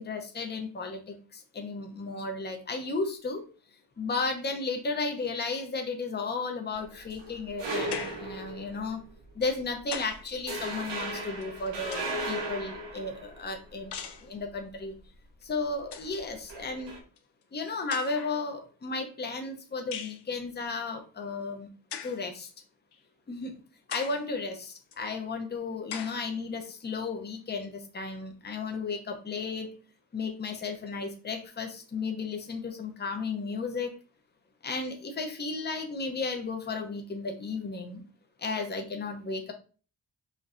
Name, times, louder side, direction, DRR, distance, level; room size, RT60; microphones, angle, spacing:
voice 1, 0.0-3.4 4.0-9.0 9.4-13.9 14.2-14.9 15.4-16.9 17.5-21.7 22.0-22.5 23.3-23.5 23.9-29.7 30.1-33.9 34.6-38.0 38.4-39.5, left 4 dB, 25° left, 4 dB, 0.6 m, -34 dB
sound 1, 6.7-9.0 9.4-9.6 10.0-10.1 10.5-14.0 16.0-17.0, right 2 dB, 80° right, 1.2 m, -36 dB
sound 2, 7.9-8.3 9.4-10.3 11.4-12.3 13.9-14.3 15.4-15.5 15.8-16.2 17.2-17.3 17.9-18.4 19.9-20.2 21.9-22.2 22.9-23.0 23.9-24.3 24.9-25.0 25.9-26.2, left 8 dB, 65° left, 0.6 m, -40 dB
5.1 x 2.7 x 2.5 m, 0.38 s
wide cardioid pair, 150°, 43 cm